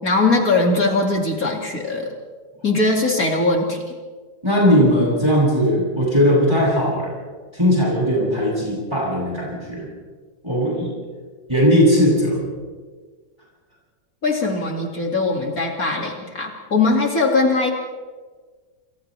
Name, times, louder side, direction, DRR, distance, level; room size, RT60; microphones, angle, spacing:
voice 1, 0.0-2.1 2.6-3.9 14.2-17.7, left 3 dB, 50° left, 0 dB, 2.9 m, -20 dB
voice 2, 4.4-7.2 7.5-9.9 10.4-10.9 11.5-12.4, equal, 15° right, -6 dB, 7.9 m, -18 dB
29.0 x 28.5 x 3.4 m, 1.5 s
omnidirectional pair, 2.0 m